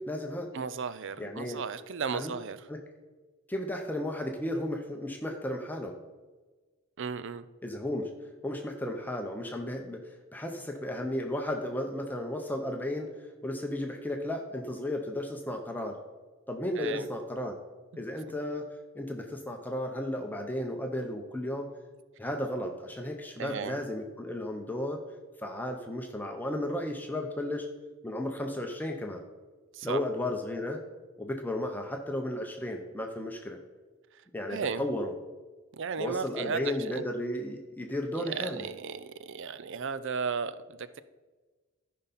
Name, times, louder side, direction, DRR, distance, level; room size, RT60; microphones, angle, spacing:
voice 1, 0.0-0.5 1.2-1.6 2.1-2.4 2.7-2.8 3.5-6.0 7.6-8.1 8.4-16.0 16.5-17.6 18.0-18.7 18.9-21.7 22.2-25.0 25.4-27.7 28.0-29.2 29.8-30.8 31.2-33.6 34.3-35.1 36.0-38.7, left 1 dB, 10° left, 3 dB, 0.7 m, -34 dB
voice 2, 0.5-2.6 7.0-7.4 16.8-17.1 23.4-23.8 29.7-30.0 34.5-34.8 35.8-37.0 38.1-41.0, right 5 dB, 60° right, 14 dB, 0.5 m, -35 dB
14.0 x 5.6 x 4.2 m, 1.3 s
head